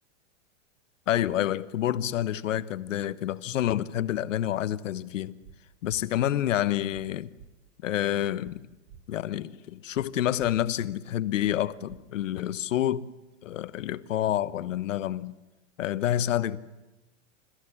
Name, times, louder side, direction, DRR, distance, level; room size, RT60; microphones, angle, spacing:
voice 1, 1.1-5.4 5.8-7.3 7.8-8.7 9.1-13.1 13.4-15.3 15.8-16.6, left 12 dB, 85° left, 1.2 m, -28 dB
sound 1, 5.4-5.6 5.9-6.0 6.9-7.0 7.4-7.5 8.4-8.5 8.9-9.0 9.9-10.0 10.4-10.5 11.4-11.6 11.9-12.0, right 8 dB, 35° right, 2.4 m, -49 dB
28.5 x 15.0 x 9.9 m
supercardioid pair, 155°, 37 cm